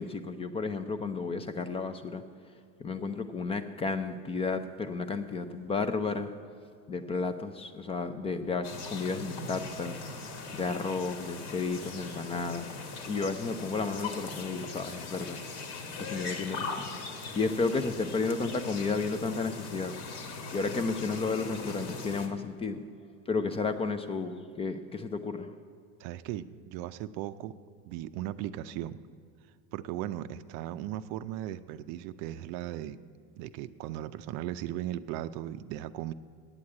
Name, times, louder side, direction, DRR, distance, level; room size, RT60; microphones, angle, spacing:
voice 1, 0.0-2.2 2.8-6.3 6.9-10.0 10.5-12.6 13.1-15.4 16.0-16.9 17.4-19.9 20.5-22.8 23.3-25.6, left 4 dB, 20° left, 10 dB, 0.4 m, -32 dB
sound 1, 8.6-22.3, left 4 dB, 65° left, 1.7 m, -40 dB
voice 2, 26.0-27.5 27.8-29.0 29.7-33.0 33.4-36.1, right 13 dB, 55° right, 13 dB, 0.5 m, -37 dB
8.8 x 8.0 x 8.6 m, 2.2 s
supercardioid pair, 140°, 33 cm